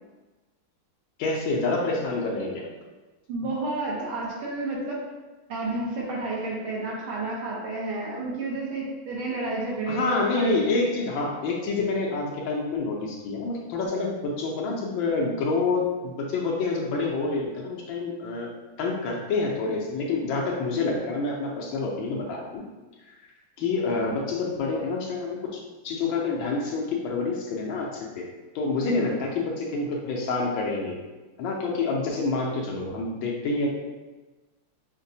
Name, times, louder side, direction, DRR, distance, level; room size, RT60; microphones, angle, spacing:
voice 1, 1.2-2.7 9.9-18.5 18.8-22.6 23.0-23.3 23.6-28.3 28.5-31.0 31.4-33.7, left 3 dB, 75° left, -1 dB, 1.3 m, -27 dB
voice 2, 3.3-5.1 5.5-10.6 28.8-29.1, right 2 dB, 75° right, -4 dB, 1.7 m, -31 dB
5.9 x 2.1 x 2.6 m, 1.2 s
omnidirectional pair, 2.3 m